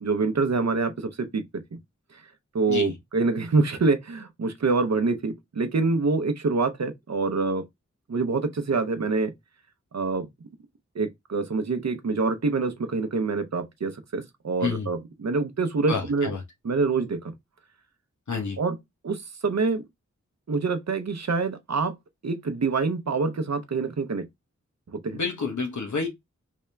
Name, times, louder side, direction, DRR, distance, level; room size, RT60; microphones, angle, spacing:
voice 1, 0.0-1.8 2.1-2.2 2.5-7.6 8.1-9.3 9.9-10.5 10.9-16.3 16.6-17.3 18.6-18.8 19.0-19.9 20.5-22.0 22.2-24.3 24.9-25.2, right 4 dB, 65° right, 0.7 m, -26 dB
voice 2, 15.9-16.4 18.3-18.6 25.1-26.1, left 4 dB, 75° left, 0.9 m, -29 dB
3.4 x 2.7 x 3.3 m
wide cardioid pair, 70°, 29 cm